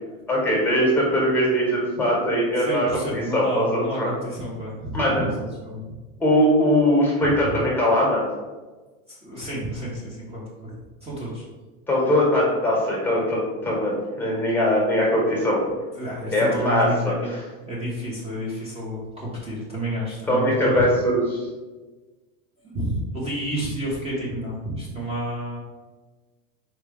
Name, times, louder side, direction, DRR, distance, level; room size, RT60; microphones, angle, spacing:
voice 1, 0.3-4.1 4.9-5.2 6.2-8.2 11.9-15.6 16.3-17.4 20.3-21.4, equal, 5° left, -4 dB, 1.4 m, -21 dB
voice 2, 2.6-5.8 9.1-10.7 11.0-11.5 16.0-17.3 17.6-20.8 22.7-25.6, equal, 15° right, -7 dB, 1.1 m, -30 dB
4.3 x 3.3 x 3.5 m, 1.3 s
supercardioid pair, 135°, 43 cm